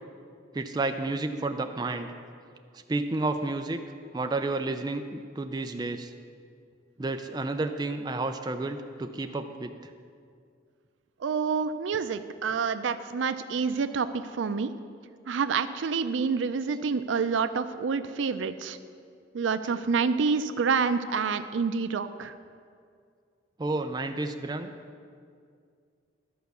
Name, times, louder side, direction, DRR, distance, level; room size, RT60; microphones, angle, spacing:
voice 1, 0.5-2.1 2.9-3.8 4.1-6.1 7.0-9.7 23.6-24.7, right 2 dB, 20° right, 6 dB, 0.4 m, -31 dB
voice 2, 11.2-14.7 15.3-18.8 19.3-22.3, right 5 dB, 90° right, 11 dB, 0.4 m, -28 dB
11.5 x 4.7 x 6.8 m, 2.2 s
head